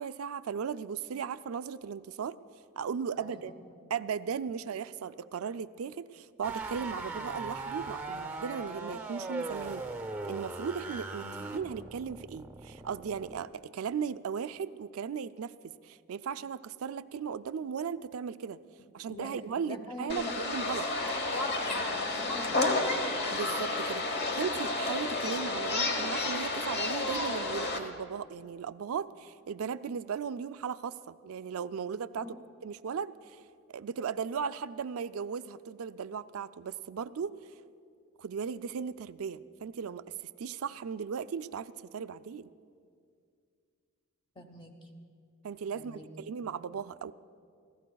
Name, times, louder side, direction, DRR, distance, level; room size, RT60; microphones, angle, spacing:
voice 1, 0.0-2.4 2.8-3.5 3.9-9.8 10.2-18.6 18.9-20.9 23.3-32.4 32.6-33.4 33.7-37.3 38.2-40.1 40.4-42.5 45.4-47.1, right 6 dB, 75° right, 14 dB, 0.4 m, -37 dB
voice 2, 3.2-3.7 11.2-11.5 19.1-20.3 21.7-22.7 32.2-32.3 44.4-44.9 45.7-46.3, left 2 dB, 20° left, 4 dB, 0.8 m, -45 dB
sound 1, 6.4-13.4, right 3 dB, 10° right, 0.7 m, -39 dB
sound 2, 20.1-27.8, left 2 dB, 45° left, 1.1 m, -31 dB
29.0 x 15.0 x 2.3 m, 2.3 s
head